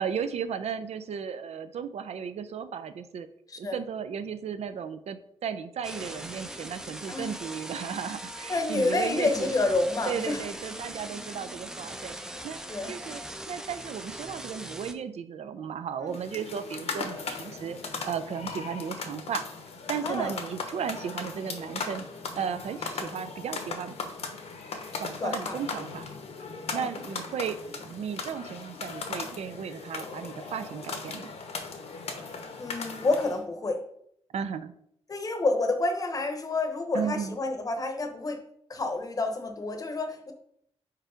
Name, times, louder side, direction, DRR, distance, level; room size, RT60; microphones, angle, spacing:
voice 1, 0.0-3.3 3.6-9.5 10.1-12.6 12.9-13.2 13.5-17.8 18.0-19.4 19.9-22.1 22.3-24.0 25.0-26.1 26.7-31.3 34.3-34.7 36.9-37.4, right 7 dB, 75° right, 11 dB, 0.5 m, -35 dB
sound 1, 5.8-14.9, right 1 dB, 5° right, 0.4 m, -40 dB
voice 2, 8.5-10.4 12.7-13.0 16.0-16.1 20.0-20.3 25.2-25.6 26.7-26.9 32.6-33.8 35.1-38.4 38.7-40.3, left 2 dB, 35° left, 6 dB, 0.8 m, -29 dB
sound 2, 16.1-33.4, left 4 dB, 70° left, 0.9 m, -38 dB
4.7 x 4.5 x 5.0 m, 0.70 s
wide cardioid pair, 160°, 11 cm